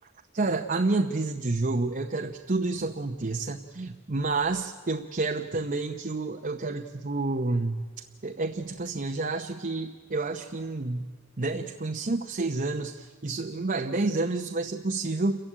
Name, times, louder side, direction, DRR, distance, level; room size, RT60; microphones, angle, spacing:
voice 1, 0.3-7.8 8.2-11.0 11.4-15.4, right 3 dB, 40° right, 4 dB, 0.8 m, -29 dB
28.0 x 15.5 x 9.9 m, 1.4 s
head